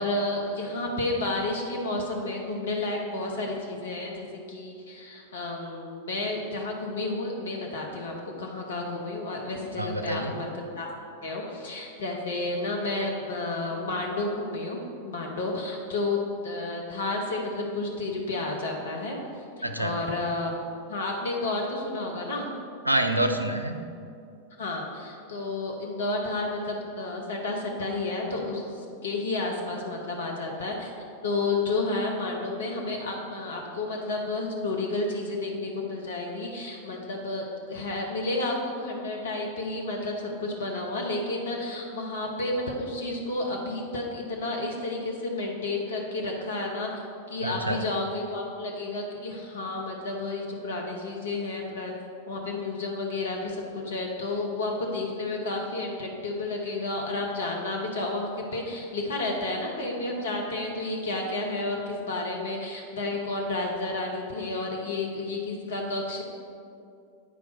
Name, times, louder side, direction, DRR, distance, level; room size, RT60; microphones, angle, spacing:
voice 1, 0.0-10.9 11.2-20.5 20.9-22.5 24.6-30.9 31.2-47.0 47.3-51.9 52.3-66.2, left 2 dB, 65° left, 0 dB, 0.9 m, -31 dB
voice 2, 9.8-10.3 19.6-19.9 22.9-23.9 47.4-47.8, right 1 dB, 85° right, 6 dB, 0.5 m, -27 dB
8.6 x 4.7 x 4.1 m, 2.5 s
figure-of-eight pair, 90°, 0 cm